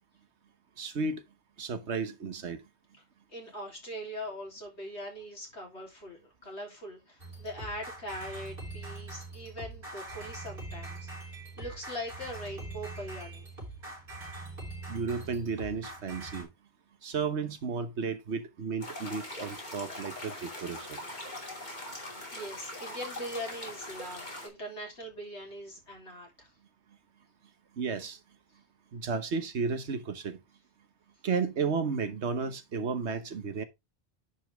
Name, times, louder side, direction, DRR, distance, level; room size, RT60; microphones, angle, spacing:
voice 1, 0.8-1.2 1.6-2.6 14.9-16.5 17.0-21.0 27.8-28.2 28.9-30.4 31.2-33.6, right 5 dB, 85° right, 1.4 m, -33 dB
voice 2, 3.3-13.5 22.3-26.5, equal, 90° left, 3.8 m, -41 dB
sound 1, 7.2-16.4, right 2 dB, 55° right, 4.5 m, -43 dB
sound 2, 18.8-24.5, left 1 dB, 40° left, 3.0 m, -41 dB
10.0 x 5.2 x 3.5 m
omnidirectional pair, 1.1 m